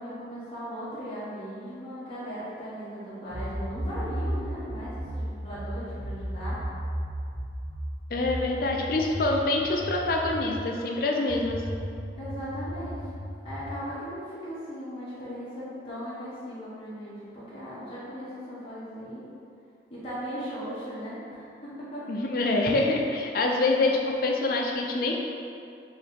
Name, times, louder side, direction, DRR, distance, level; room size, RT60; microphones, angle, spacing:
voice 1, 0.0-6.6 12.2-13.1 13.4-19.2 19.9-22.0, equal, 30° left, -12 dB, 1.1 m, -38 dB
sound 1, 3.3-10.6 11.3-13.8, equal, 5° right, 1.0 m, -35 dB
voice 2, 8.1-11.6 22.1-25.1, left 2 dB, 55° left, 0 dB, 0.4 m, -25 dB
4.3 x 2.8 x 3.6 m, 2.5 s
head